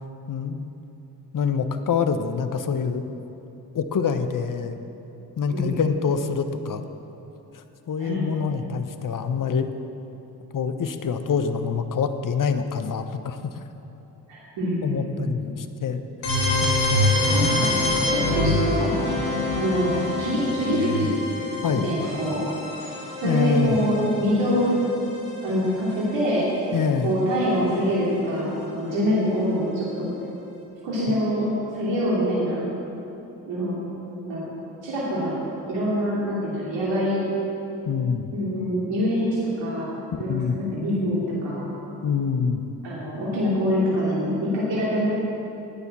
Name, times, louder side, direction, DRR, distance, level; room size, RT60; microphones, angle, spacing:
voice 1, 0.3-0.7 1.3-3.0 3.7-4.8 5.4-6.8 7.5-9.7 10.5-13.6 14.8-17.1 17.5-17.9 21.6-21.9 23.2-23.8 26.7-27.2 31.1-31.2 37.9-38.3 40.3-40.6 42.0-42.6, left 6 dB, 45° left, 9 dB, 1.0 m, -26 dB
voice 2, 5.5-6.0 8.0-8.3 14.3-15.4 17.3-19.0 19.5-21.1 21.7-22.4 23.2-24.7 25.4-26.5 27.0-30.1 30.8-32.7 33.5-33.8 34.2-34.4 34.8-35.4 35.6-37.2 38.3-39.9 40.2-40.3 40.5-41.7 42.8-45.0, equal, 70° right, -7 dB, 2.9 m, -25 dB
sound 1, 16.2-26.0, left 1 dB, 85° left, 2.8 m, -25 dB
13.5 x 9.6 x 6.1 m, 2.9 s
hypercardioid pair, 45°, 46 cm